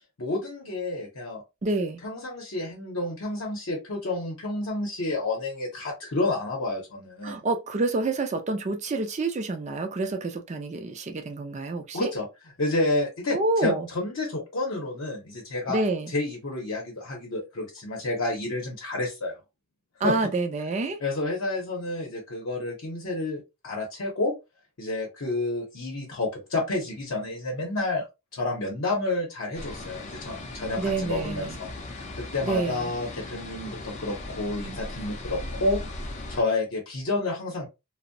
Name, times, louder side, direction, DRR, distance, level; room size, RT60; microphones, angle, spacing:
voice 1, 0.2-1.4 2.0-7.4 11.9-12.3 12.6-15.8 16.1-19.4 20.0-20.1 21.0-24.3 24.8-28.0 28.3-35.8 36.3-37.7, left 2 dB, 65° left, 0.7 m, -30 dB
voice 2, 1.6-2.0 7.2-12.1 13.3-13.9 15.7-16.1 20.0-21.0 30.8-31.6 32.4-32.9, right 3 dB, 30° right, 0.4 m, -28 dB
sound 1, 29.5-36.4, left 2 dB, 35° left, 0.4 m, -38 dB
2.6 x 2.0 x 2.6 m
head